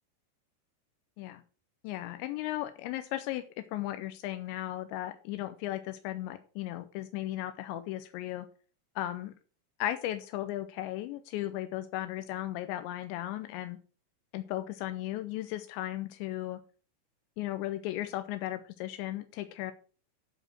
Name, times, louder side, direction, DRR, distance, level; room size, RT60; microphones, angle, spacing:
voice 1, 1.8-3.4 3.7-8.5 9.0-9.3 9.8-13.8 14.3-16.6 17.4-19.7, left 14 dB, 85° left, 10 dB, 3.0 m, -36 dB
12.0 x 5.1 x 6.1 m, 0.38 s
omnidirectional pair, 5.1 m